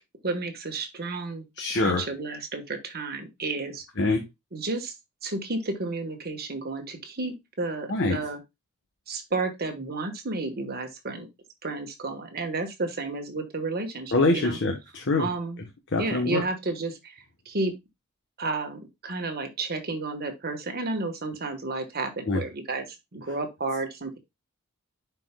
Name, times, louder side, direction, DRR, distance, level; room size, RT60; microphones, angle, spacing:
voice 1, 0.2-1.4 1.8-3.8 4.5-4.9 5.2-8.4 9.1-11.3 11.6-14.6 15.2-15.6 16.0-17.0 17.5-17.7 18.4-22.8 23.1-24.2, right 3 dB, 45° right, 5 dB, 1.3 m, -31 dB
voice 2, 1.6-2.1 4.0-4.2 7.9-8.3 14.1-15.3 15.6-16.5 22.2-22.5, left 2 dB, 50° left, 3 dB, 1.1 m, -25 dB
10.5 x 4.6 x 2.2 m, 0.21 s
head